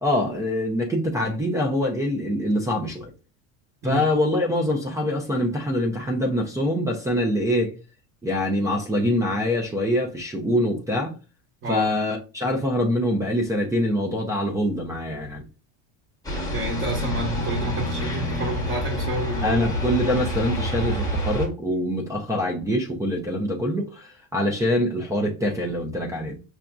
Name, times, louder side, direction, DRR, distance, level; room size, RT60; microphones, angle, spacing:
voice 1, 0.0-3.1 3.8-7.7 8.2-11.1 11.7-15.4 19.4-26.4, left 1 dB, 10° right, 0.4 m, -24 dB
sound 1, 16.2-21.5, equal, 10° left, 0.9 m, -27 dB
voice 2, 16.5-19.7, right 1 dB, 30° right, 1.0 m, -30 dB
5.8 x 2.5 x 2.2 m
cardioid pair, 150°, 38 cm